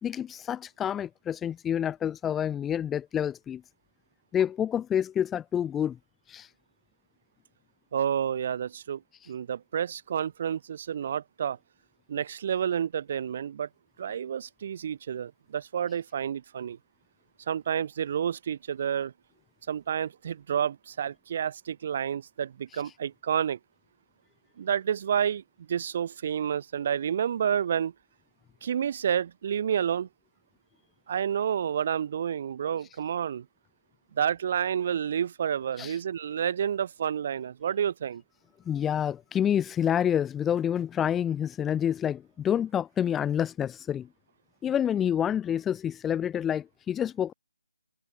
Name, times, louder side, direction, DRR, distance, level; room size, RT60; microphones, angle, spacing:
voice 1, 0.0-3.6 4.3-6.0 6.3-6.5 35.8-36.0 38.6-44.1 44.6-47.3, left 9 dB, 10° left, 1.4 m, -28 dB
voice 2, 7.9-9.0 9.3-11.6 12.1-13.7 14.0-16.8 17.5-19.1 19.7-23.6 24.6-27.9 28.6-30.1 31.1-33.4 34.1-38.2, right 8 dB, 40° right, 7.8 m, -29 dB
figure-of-eight pair, 150°, 0 cm